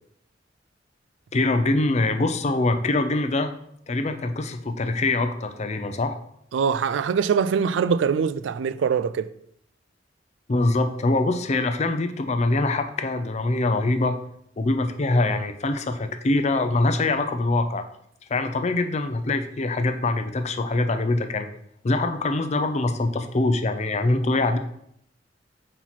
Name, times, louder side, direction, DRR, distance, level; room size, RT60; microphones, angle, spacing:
voice 1, 1.3-3.5 3.9-6.2 10.5-14.2 14.6-17.8 18.3-21.5 21.8-24.6, left 2 dB, 40° left, 0.5 m, -23 dB
voice 2, 6.5-9.3, right 6 dB, 85° right, 0.3 m, -23 dB
5.7 x 4.5 x 4.1 m
head